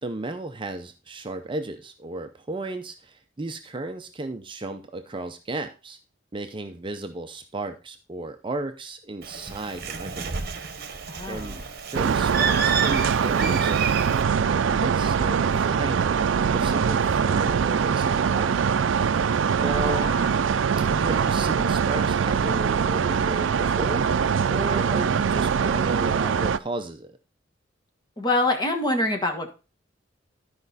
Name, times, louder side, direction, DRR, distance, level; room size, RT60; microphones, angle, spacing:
voice 1, 0.0-6.0 6.3-10.4 11.3-11.6 11.9-16.2 16.5-18.6 19.6-20.2 20.9-24.1 24.5-27.1, right 2 dB, 25° right, 7 dB, 0.6 m, -34 dB
Bird, 9.2-14.2, right 6 dB, 55° right, 1.0 m, -30 dB
voice 2, 11.1-11.7 19.5-20.4 28.2-29.5, left 2 dB, 25° left, 3 dB, 1.6 m, -26 dB
sound 1, 11.9-26.6, right 6 dB, 80° right, 0.4 m, -23 dB
12.0 x 5.1 x 4.0 m, 0.32 s
head